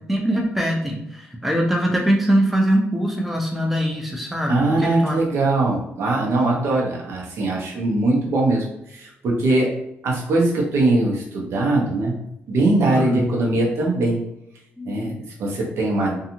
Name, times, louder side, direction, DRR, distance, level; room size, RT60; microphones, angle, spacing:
voice 1, 0.1-5.2 12.9-13.3 14.8-15.2, equal, 5° right, 0 dB, 0.4 m, -22 dB
voice 2, 4.5-9.8 10.0-14.2 14.8-16.2, right 2 dB, 75° right, -2 dB, 0.8 m, -21 dB
2.6 x 2.3 x 2.8 m, 0.82 s
cardioid pair, 125°, 5 cm